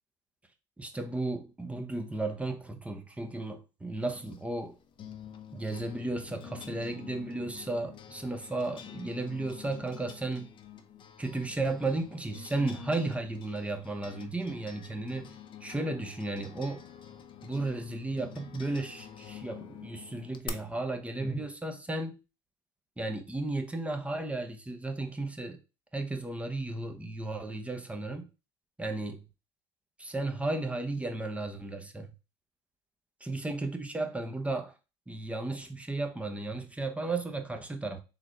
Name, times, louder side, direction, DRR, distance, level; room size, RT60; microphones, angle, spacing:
voice 1, 0.8-4.7 5.5-10.5 11.2-16.8 17.4-22.1 23.0-25.6 25.9-28.3 28.8-29.2 30.0-32.1 33.2-34.7 35.1-38.0, right 2 dB, 10° right, 0.8 m, -34 dB
sound 1, 4.0-20.5, left 9 dB, 40° left, 0.7 m, -48 dB
3.9 x 3.3 x 2.9 m
hypercardioid pair, 80°, 13 cm